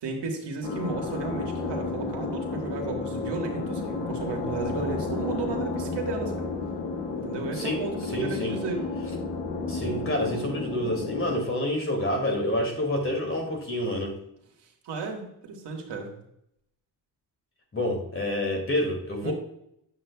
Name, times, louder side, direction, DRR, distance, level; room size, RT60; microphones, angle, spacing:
voice 1, 0.0-6.5 7.1-8.9 14.8-16.1 19.2-19.3, right 4 dB, 80° right, 1 dB, 1.7 m, -34 dB
sound 1, 0.6-11.4, left 3 dB, 90° left, 1.4 m, -32 dB
voice 2, 8.1-8.6 9.7-14.2 17.7-19.3, left 1 dB, 30° left, 2 dB, 2.4 m, -28 dB
8.6 x 7.3 x 2.3 m, 0.76 s
cardioid pair, 95°, 41 cm